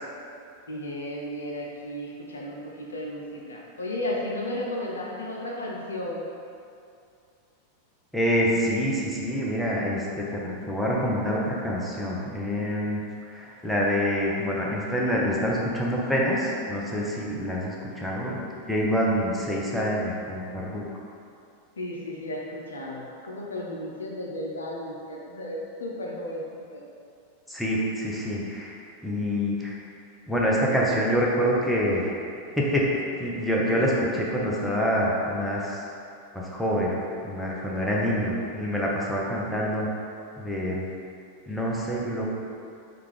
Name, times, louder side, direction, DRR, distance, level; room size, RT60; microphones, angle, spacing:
voice 1, 0.7-6.2 21.8-26.8, left 1 dB, 70° left, -2 dB, 0.5 m, -34 dB
voice 2, 8.1-13.0 13.3-18.4 18.7-20.8 27.5-28.7 29.0-29.7 30.3-32.2 32.6-32.9 33.2-35.8 36.3-37.0 37.2-39.9 40.4-40.9 41.5-42.3, equal, 5° left, -5 dB, 0.6 m, -26 dB
4.4 x 2.4 x 3.6 m, 2.4 s
figure-of-eight pair, 90°, 0 cm